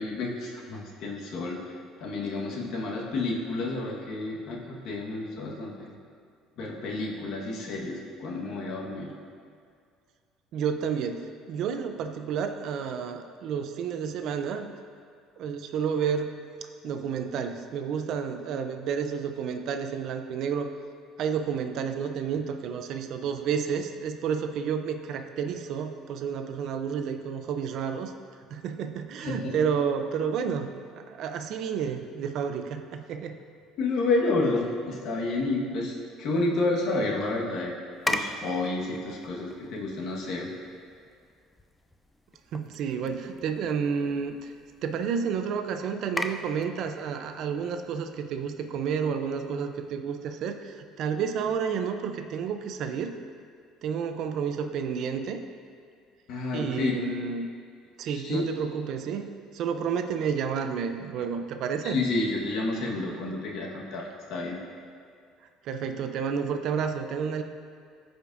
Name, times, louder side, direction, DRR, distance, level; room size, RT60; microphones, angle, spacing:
voice 1, 0.0-1.6 2.0-6.0 6.6-9.1 29.2-29.5 33.8-37.7 38.1-40.5 56.3-57.0 58.1-58.5 61.8-64.6, left 2 dB, 65° left, -2 dB, 1.4 m, -30 dB
voice 2, 10.5-14.7 15.4-16.3 16.8-20.7 21.2-28.1 28.5-33.4 42.5-44.4 44.8-53.2 53.8-55.4 56.5-57.5 58.0-59.2 59.5-62.0 65.6-67.4, right 7 dB, 60° right, 7 dB, 0.6 m, -30 dB
sound 1, 37.9-49.9, left 1 dB, 10° left, 0.4 m, -40 dB
14.5 x 5.1 x 2.6 m, 2.2 s
supercardioid pair, 105°, 0 cm